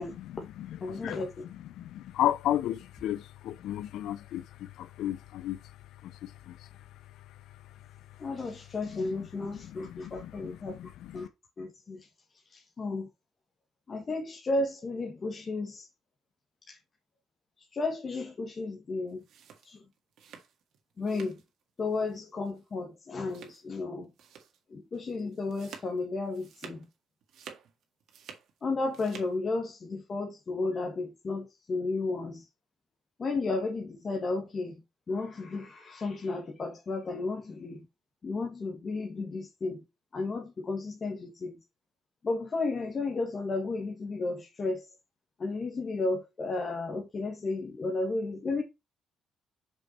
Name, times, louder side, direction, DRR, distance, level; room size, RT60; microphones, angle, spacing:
voice 1, 0.2-1.2 1.5-5.6 6.0-6.7 8.9-11.3, left 12 dB, 85° left, 0.5 m, -34 dB
voice 2, 0.8-1.5 8.2-10.8 11.1-11.3 11.6-12.1 12.5-13.1 13.9-15.9 16.7-16.8 17.6-19.2 19.6-19.8 21.0-21.4 21.8-24.1 24.7-26.9 28.6-32.5 33.2-34.8 35.1-37.8 38.2-39.8 40.1-41.6 42.2-44.9 45.4-48.6, left 3 dB, 40° left, 1.5 m, -33 dB
sound 1, 19.1-21.5 21.8-22.2 22.4-22.6 23.2-23.8 24.2-24.6 24.9-26.9 27.2-28.5 28.8-29.3, right 7 dB, 75° right, 1.7 m, -50 dB
6.1 x 5.3 x 4.2 m
cardioid pair, 90°, 0 cm